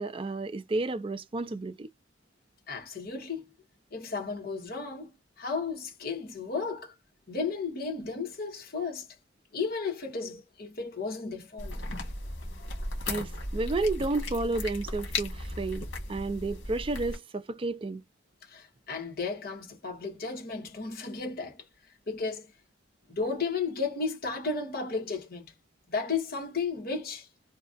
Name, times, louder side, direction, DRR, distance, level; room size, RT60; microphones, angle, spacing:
voice 1, 0.0-1.9 13.1-18.0, right 2 dB, 30° right, 0.4 m, -31 dB
voice 2, 2.7-3.4 3.9-5.1 5.4-6.9 7.3-9.1 9.5-11.8 18.4-21.6 22.1-22.5 23.1-25.5 25.9-27.3, left 4 dB, 50° left, 1.3 m, -34 dB
sound 1, 11.6-17.2, left 2 dB, 85° left, 1.5 m, -36 dB
3.1 x 2.4 x 2.6 m
head